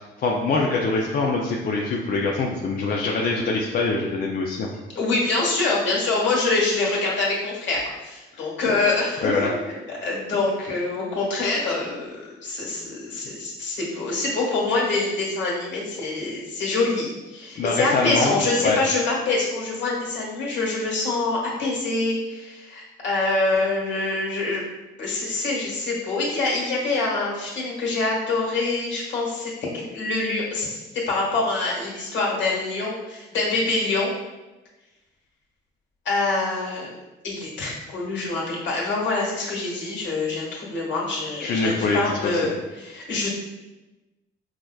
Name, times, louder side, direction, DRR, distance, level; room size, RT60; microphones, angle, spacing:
voice 1, 0.2-4.7 8.3-8.4 8.7-8.8 9.2-9.5 17.6-18.8 41.4-42.4, left 3 dB, 50° left, -2 dB, 0.4 m, -24 dB
voice 2, 4.9-12.1 12.4-24.6 25.0-30.8 31.1-34.1 36.0-36.9 37.2-43.3, left 3 dB, 70° left, -4 dB, 1.2 m, -25 dB
4.7 x 2.1 x 2.2 m, 1.1 s
cardioid pair, 90°, 20 cm